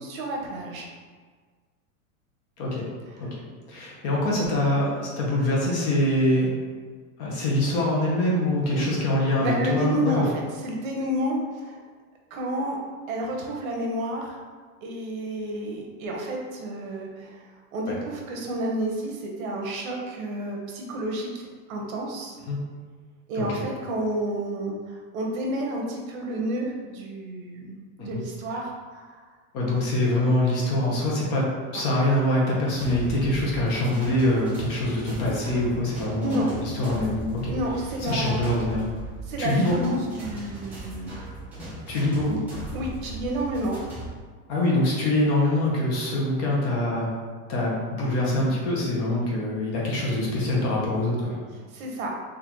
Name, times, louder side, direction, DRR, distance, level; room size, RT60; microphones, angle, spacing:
voice 1, 0.0-0.9 8.7-8.9 9.4-10.3 10.6-11.8 12.3-12.8 13.1-14.4 14.8-22.4 23.3-29.2 36.2-36.5 37.5-38.6 39.3-41.1 42.7-43.8 51.7-52.1, right 1 dB, 70° right, 0 dB, 0.9 m, -30 dB
voice 2, 3.7-6.5 7.2-10.2 17.9-18.0 22.5-22.6 23.4-23.6 28.0-28.2 29.5-31.4 31.7-37.5 38.0-38.9 39.4-39.9 41.9-42.7 44.5-47.1 47.5-51.4, left 1 dB, 35° left, -4 dB, 0.8 m, -24 dB
sound 1, 32.8-44.1, right 2 dB, 5° right, 0.4 m, -38 dB
4.1 x 2.6 x 2.9 m, 1.5 s
supercardioid pair, 165°, 43 cm